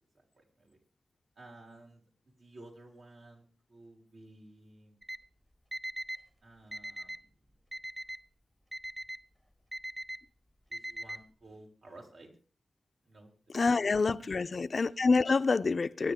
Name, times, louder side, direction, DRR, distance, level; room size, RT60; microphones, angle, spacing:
voice 1, 0.1-0.8 1.4-2.0 2.4-5.0 6.4-7.3 10.7-12.3 13.0-13.3 14.3-14.5, right 2 dB, 75° right, 5.6 m, -54 dB
Alarm, 5.0-5.2 5.7-6.2 6.7-7.2 7.7-8.2 8.7-9.2 9.7-10.2 10.7-11.2, right 1 dB, 15° right, 1.1 m, -40 dB
voice 2, 13.5-16.1, left 4 dB, 55° left, 0.6 m, -27 dB
24.5 x 10.0 x 3.6 m
cardioid pair, 60°, 0 cm